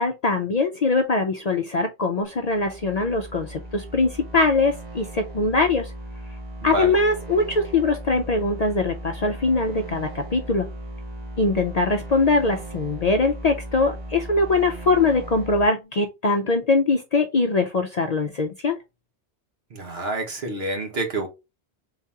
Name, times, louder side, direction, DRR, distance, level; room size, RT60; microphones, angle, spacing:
voice 1, 0.0-5.9 6.6-10.7 11.4-18.8, left 3 dB, 50° left, 0.5 m, -22 dB
sound 1, 2.2-15.6, right 1 dB, 40° right, 1.5 m, -37 dB
voice 2, 6.6-6.9 19.7-21.3, right 2 dB, 65° right, 1.5 m, -28 dB
3.9 x 2.8 x 3.5 m
omnidirectional pair, 1.1 m